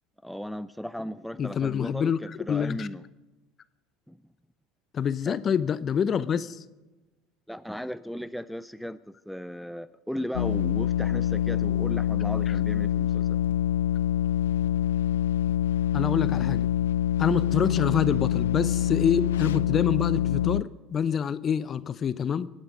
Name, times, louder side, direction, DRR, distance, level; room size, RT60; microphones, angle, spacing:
voice 1, 0.2-3.0 4.1-4.2 5.3-5.4 7.5-13.4, equal, ahead, 14 dB, 0.4 m, -36 dB
voice 2, 1.4-2.2 2.5-2.9 4.9-6.6 15.9-16.7 17.2-22.5, left 7 dB, 40° left, 16 dB, 0.7 m, -26 dB
sound 1, 10.3-20.6, left 10 dB, 80° left, 0.4 m, -25 dB
25.0 x 9.0 x 5.3 m, 1.1 s
hypercardioid pair, 75°, 0 cm